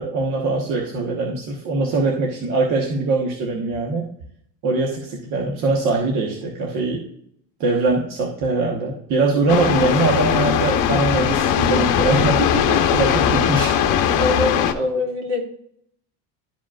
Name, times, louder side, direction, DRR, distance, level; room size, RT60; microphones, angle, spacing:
voice 1, 0.0-4.1 4.6-7.0 7.6-12.4 12.9-13.9, right 3 dB, 50° right, -1 dB, 1.2 m, -22 dB
sound 1, 9.5-14.7, left 9 dB, 50° left, 0.9 m, -19 dB
voice 2, 12.4-12.8 14.2-15.4, left 1 dB, 65° right, -1 dB, 2.6 m, -24 dB
12.0 x 5.0 x 2.4 m, 0.68 s
cardioid pair, 165°, 40 cm